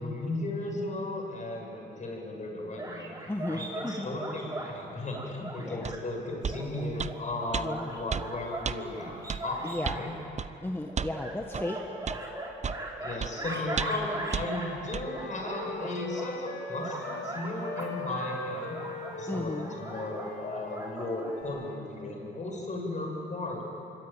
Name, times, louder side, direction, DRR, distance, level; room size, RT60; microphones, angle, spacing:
voice 1, 0.0-9.1 9.4-10.1 13.0-18.8 19.2-23.7, left 2 dB, 40° left, 0 dB, 7.8 m, -35 dB
sound 1, 2.8-4.7 5.1-6.0 6.5-10.1 10.9-14.7 15.1-16.3 16.7-21.4, right 1 dB, 20° right, 5.1 m, -39 dB
voice 2, 3.3-4.1 5.6-5.8 6.3-6.4 7.6-8.0 9.6-10.0 10.6-11.8 19.3-19.7, left 1 dB, 10° left, 3 dB, 1.5 m, -35 dB
sound 2, 5.8-6.0 6.4-6.6 7.0-7.2 7.5-7.7 8.1-8.3 8.6-8.8 9.3-9.4 9.8-10.0 10.4-10.5 11.0-11.2 11.5-11.7 12.1-12.2 12.6-12.8 13.2-13.3 13.8-14.0 14.3-14.5 14.9-15.1, right 6 dB, 35° right, 0.7 m, -32 dB
Wind instrument woodwind instrument, 13.4-17.3 17.6-21.8, left 2 dB, 55° left, 4.8 m, -41 dB
25.5 x 22.5 x 9.1 m, 2.9 s
cardioid pair, 90°, 20 cm